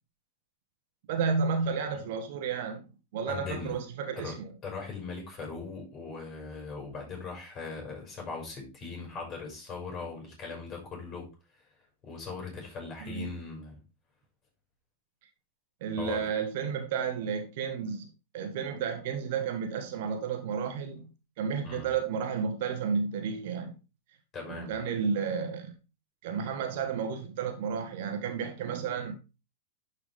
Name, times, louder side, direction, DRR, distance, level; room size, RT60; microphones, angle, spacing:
voice 1, 1.1-2.8 3.1-4.5 13.0-13.3 15.8-18.1 18.3-21.0 21.4-23.7 24.5-25.8 26.2-29.1, right 6 dB, 55° right, 1.7 m, -32 dB
voice 2, 3.3-3.7 4.2-11.3 12.0-13.8 16.0-16.3 21.6-21.9 24.3-24.7, left 4 dB, 30° left, 5.9 m, -40 dB
11.5 x 4.9 x 3.7 m
figure-of-eight pair, 95°, 0 cm